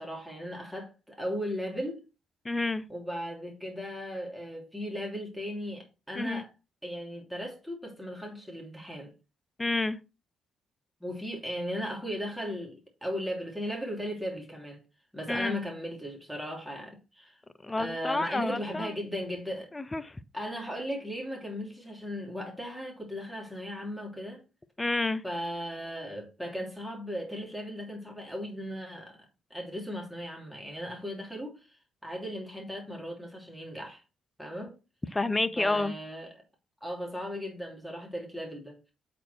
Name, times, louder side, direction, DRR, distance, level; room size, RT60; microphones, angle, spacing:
voice 1, 0.0-2.0 2.9-6.5 6.8-9.1 11.0-14.8 15.1-17.4 17.8-19.7 20.3-24.4 25.2-29.2 29.5-34.0 34.4-34.8 35.6-36.4 36.8-38.9, equal, ahead, 3.2 m, -37 dB
voice 2, 2.4-2.8 6.2-6.4 9.6-10.0 15.3-15.5 17.6-18.9 19.7-20.2 24.8-25.2 35.1-35.9, left 2 dB, 20° left, 0.6 m, -29 dB
8.0 x 4.4 x 4.4 m
hypercardioid pair, 45°, 0 cm